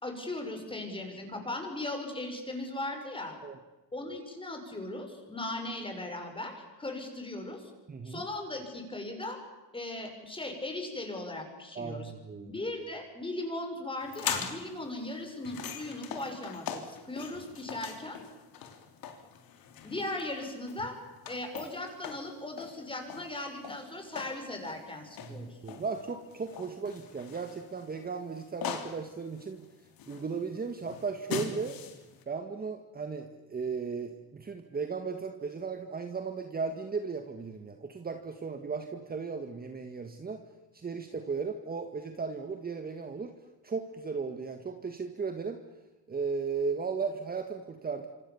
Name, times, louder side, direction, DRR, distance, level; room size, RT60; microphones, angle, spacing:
voice 1, 0.0-3.4 3.9-7.7 8.0-9.4 9.7-12.1 12.4-18.2 19.8-21.0 21.3-25.6, left 2 dB, 15° left, 4 dB, 6.1 m, -38 dB
voice 2, 7.9-8.2 11.8-12.5 25.2-29.7 30.1-31.8 32.3-40.4 40.7-43.3 43.6-45.6 46.1-48.1, right 5 dB, 25° right, 6 dB, 1.8 m, -36 dB
sound 1, 14.0-32.2, left 8 dB, 60° left, 3.5 m, -42 dB
26.5 x 26.5 x 7.2 m, 1.1 s
cardioid pair, 120°, 39 cm